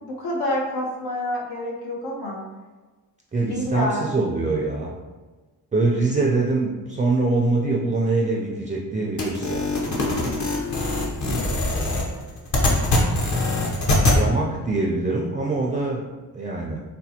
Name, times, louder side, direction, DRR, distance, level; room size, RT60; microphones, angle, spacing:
voice 1, 0.0-2.4 3.5-4.0, left 1 dB, 85° left, -3 dB, 1.0 m, -27 dB
voice 2, 3.3-4.9 5.7-10.4 14.1-16.1 16.3-16.8, right 3 dB, 20° right, -2 dB, 0.4 m, -24 dB
sound 1, 9.2-14.2, left 2 dB, 50° left, 0.8 m, -22 dB
4.2 x 2.2 x 2.8 m, 1.3 s
cardioid pair, 85°, 37 cm